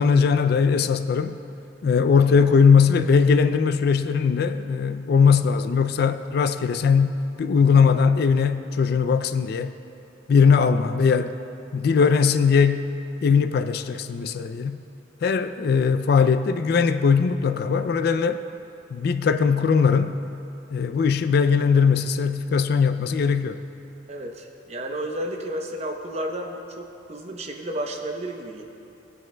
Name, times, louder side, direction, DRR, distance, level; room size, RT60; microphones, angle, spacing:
voice 1, 0.0-1.4 1.8-7.1 7.4-9.7 10.3-11.3 11.7-12.9 13.2-14.8 15.2-18.4 18.9-20.2 20.7-23.6, left 5 dB, 55° left, 10 dB, 0.3 m, -20 dB
voice 2, 24.1-28.6, right 1 dB, 35° right, 2 dB, 0.8 m, -32 dB
19.0 x 9.3 x 2.2 m, 2.7 s
head